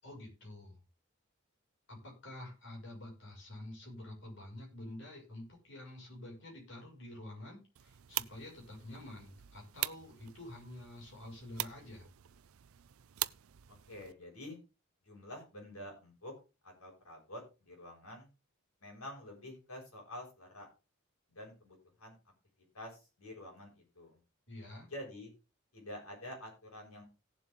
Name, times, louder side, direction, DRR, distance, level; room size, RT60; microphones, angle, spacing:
voice 1, 0.0-0.8 1.9-12.1 24.5-24.9, left 1 dB, 60° left, -1 dB, 6.4 m, -48 dB
sound 1, 7.8-14.1, right 16 dB, 80° right, 0.5 m, -43 dB
voice 2, 13.7-14.6 15.0-16.3 16.6-18.3 18.8-20.7 21.3-22.2 22.7-24.2 24.8-25.3 25.7-27.0, left 1 dB, 90° left, 0 dB, 6.8 m, -48 dB
17.0 x 7.5 x 3.9 m, 0.30 s
head